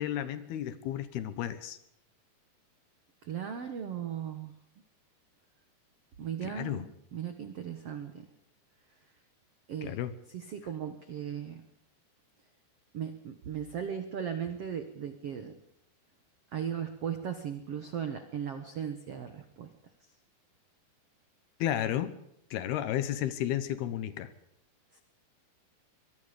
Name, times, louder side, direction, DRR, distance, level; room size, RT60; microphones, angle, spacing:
voice 1, 0.0-1.8 6.4-6.9 9.8-10.1 21.6-22.1 22.5-24.3, left 11 dB, 70° left, 13 dB, 2.9 m, -32 dB
voice 2, 3.2-4.5 6.2-8.3 9.7-10.0 10.3-11.6 12.9-15.5 16.5-19.7 24.9-25.0, right 8 dB, 80° right, 8 dB, 1.3 m, -37 dB
23.5 x 22.5 x 5.2 m, 0.74 s
omnidirectional pair, 4.9 m